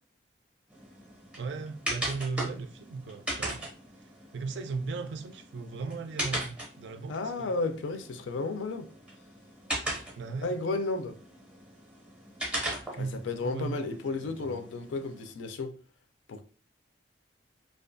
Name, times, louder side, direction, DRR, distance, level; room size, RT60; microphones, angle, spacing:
sound 1, 0.7-15.3, right 1 dB, 5° right, 0.5 m, -39 dB
voice 1, 1.4-3.7 4.0-7.6 10.2-10.5 12.9-14.6, right 4 dB, 65° right, 0.3 m, -37 dB
voice 2, 7.1-8.9 10.4-11.2 13.0-15.8 16.3-16.4, left 3 dB, 80° left, 0.4 m, -33 dB
2.4 x 2.3 x 2.5 m
head